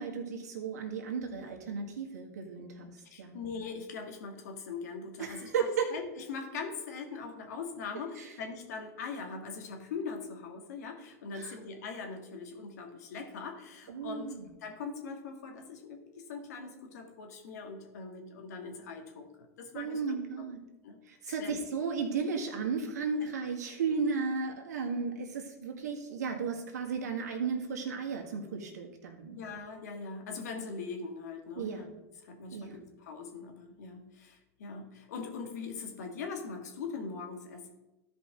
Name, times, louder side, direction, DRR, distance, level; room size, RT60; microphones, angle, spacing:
voice 1, 0.0-2.9 3.2-3.4 5.2-5.9 8.2-8.3 11.3-11.6 13.9-14.5 19.7-20.6 21.1-29.4 31.6-31.9 32.5-32.8, right 5 dB, 85° right, 2 dB, 1.7 m, -34 dB
voice 2, 3.1-14.3 14.6-16.0 16.3-20.5 20.8-21.0 21.3-21.6 23.2-23.3 29.3-31.9 32.2-37.7, left 4 dB, 80° left, 4 dB, 1.8 m, -41 dB
13.5 x 5.2 x 3.7 m, 1.0 s
hypercardioid pair, 105°, 9 cm